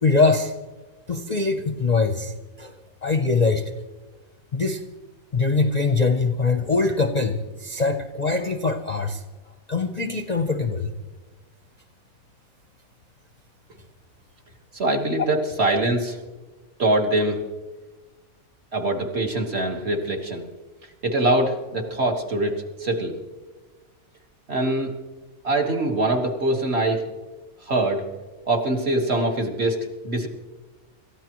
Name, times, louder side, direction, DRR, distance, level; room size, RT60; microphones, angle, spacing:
voice 1, 0.0-0.5 1.1-2.3 2.6-2.7 3.0-3.6 4.5-4.8 5.3-9.2 9.7-10.9, left 4 dB, 40° left, 6 dB, 0.7 m, -22 dB
voice 2, 14.7-16.2 16.8-17.4 18.7-20.4 21.0-23.2 24.5-25.0 25.4-27.1 27.7-28.0 28.5-30.3, right 2 dB, 45° right, 2 dB, 1.9 m, -23 dB
27.5 x 14.0 x 3.1 m, 1.2 s
omnidirectional pair, 1.5 m